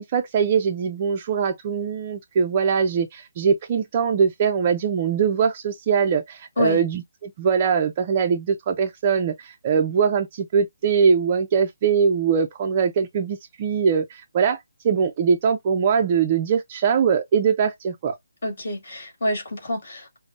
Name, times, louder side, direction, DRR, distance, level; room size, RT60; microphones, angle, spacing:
voice 1, 0.0-18.2, right 6 dB, 20° right, 0.3 m, -22 dB
voice 2, 18.4-20.2, left 1 dB, 40° left, 2.1 m, -27 dB
5.0 x 2.0 x 2.4 m
hypercardioid pair, 180°, 0 cm